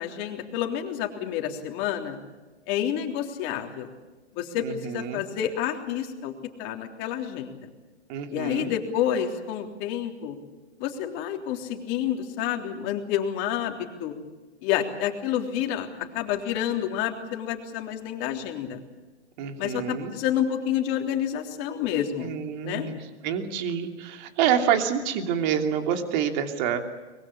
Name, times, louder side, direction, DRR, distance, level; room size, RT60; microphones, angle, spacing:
voice 1, 0.0-2.2 2.7-3.9 4.4-6.3 6.6-7.6 8.3-10.4 10.8-14.1 14.6-15.9 16.1-18.8 19.6-22.3 22.6-22.9, left 10 dB, 35° left, 3 dB, 3.5 m, -29 dB
voice 2, 4.6-5.2 8.1-8.7 19.4-20.1 22.2-23.0 23.2-26.8, right 8 dB, 40° right, 6 dB, 2.9 m, -27 dB
24.0 x 21.5 x 8.5 m, 1.2 s
hypercardioid pair, 140°, 35 cm